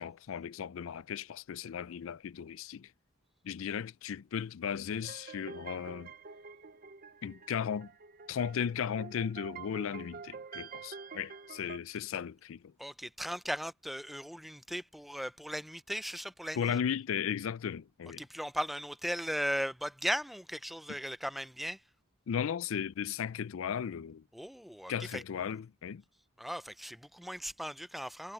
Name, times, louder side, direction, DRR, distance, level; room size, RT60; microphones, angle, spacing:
voice 1, 0.0-2.9 3.4-6.1 7.2-7.9 8.3-12.7 16.5-18.2 22.3-24.2 24.9-26.0, left 7 dB, 75° left, 0.4 m, -36 dB
sound 1, 5.0-11.8, right 5 dB, 45° right, 0.7 m, -48 dB
voice 2, 12.8-16.8 18.2-21.8 24.3-25.2 26.4-28.3, equal, ahead, 0.4 m, -37 dB
head